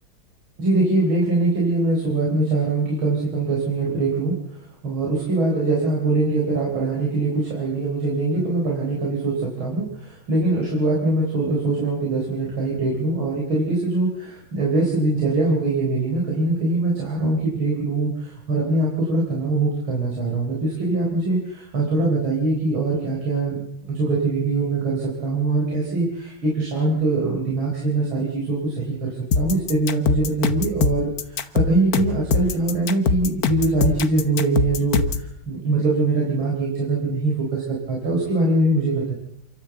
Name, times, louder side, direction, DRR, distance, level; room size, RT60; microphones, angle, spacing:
voice 1, 0.6-4.4 4.8-23.6 23.9-39.1, right 2 dB, 70° right, -3 dB, 4.9 m, -22 dB
sound 1, 29.3-35.3, left 5 dB, 50° left, 1.4 m, -22 dB
28.0 x 13.0 x 8.0 m, 0.80 s
omnidirectional pair, 2.3 m